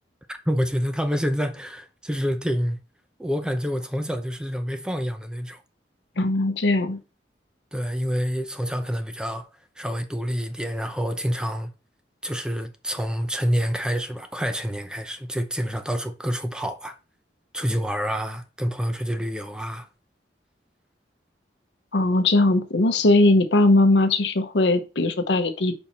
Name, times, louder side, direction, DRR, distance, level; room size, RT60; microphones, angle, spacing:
voice 1, 0.3-2.8 3.2-5.6 7.7-9.5 9.8-11.7 12.2-17.0 17.5-19.9, equal, 5° right, 0.6 m, -27 dB
voice 2, 6.2-7.0 21.9-25.8, left 2 dB, 70° left, 0.9 m, -19 dB
5.4 x 4.5 x 4.3 m
head